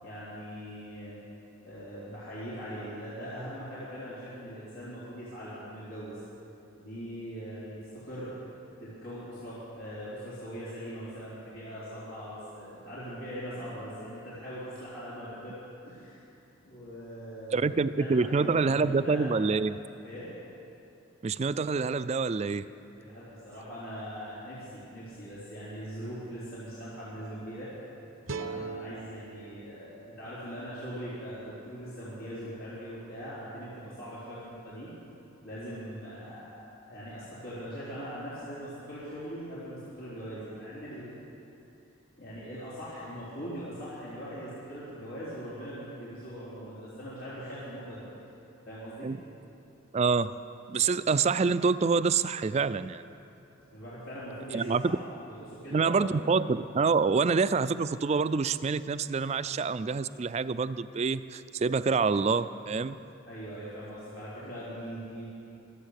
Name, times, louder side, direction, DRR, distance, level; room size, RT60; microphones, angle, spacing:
voice 1, 0.0-1.2 1.6-6.2 6.8-8.3 8.8-15.6 15.8-16.2 16.6-19.3 20.0-20.3 23.0-27.7 28.3-34.9 35.4-41.2 42.2-48.0 48.7-49.1 53.7-55.0 55.3-56.3 63.2-65.3, equal, 90° left, -11 dB, 3.9 m, -41 dB
voice 2, 17.5-19.8 21.2-22.7 49.0-49.2 49.9-50.3 50.7-53.0 54.5-55.0 55.7-63.0, right 4 dB, 30° right, 14 dB, 0.3 m, -26 dB
sound 1, 28.3-31.5, right 4 dB, 75° right, 0.7 m, -42 dB
24.0 x 8.2 x 6.6 m, 2.8 s
head